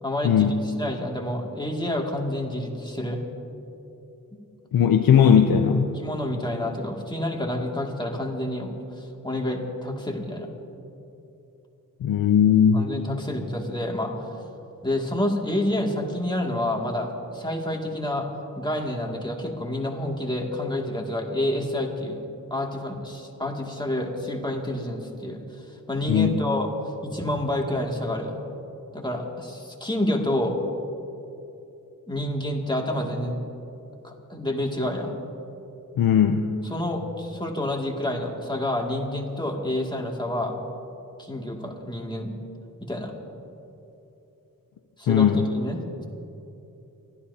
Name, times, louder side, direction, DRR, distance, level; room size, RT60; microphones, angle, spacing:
voice 1, 0.0-3.2 5.9-10.5 12.7-14.1 14.8-18.3 18.5-22.2 22.5-25.4 25.9-26.7 27.0-28.4 28.9-30.6 32.1-33.4 34.0-35.1 36.7-40.6 41.2-42.3 42.8-43.1 45.0-45.8, left 1 dB, 15° left, -1 dB, 2.3 m, -28 dB
voice 2, 4.7-5.9 12.0-12.9 26.1-26.3 36.0-36.5 45.1-45.5, left 8 dB, 85° left, 5 dB, 0.6 m, -18 dB
28.5 x 13.5 x 2.8 m, 2.9 s
cardioid pair, 60°, 34 cm